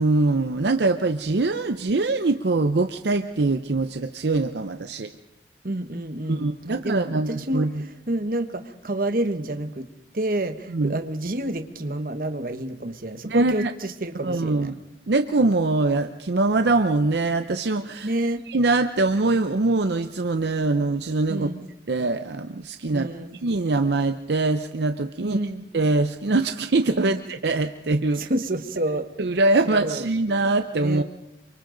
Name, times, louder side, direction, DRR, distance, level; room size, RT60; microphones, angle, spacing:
voice 1, 0.0-5.1 6.3-7.9 10.7-10.9 13.2-13.7 14.2-14.8 15.1-18.1 18.5-21.5 21.9-23.1 23.4-25.4 25.7-28.3 29.2-31.0, right 3 dB, 70° right, 8 dB, 0.7 m, -23 dB
voice 2, 5.6-7.7 8.1-9.9 10.1-14.7 18.0-18.4 21.3-21.6 22.9-23.4 25.2-25.6 27.0-27.2 28.2-29.1 29.7-30.0 30.8-31.0, right 1 dB, 50° right, 8 dB, 1.2 m, -29 dB
28.0 x 24.5 x 3.9 m, 0.89 s
head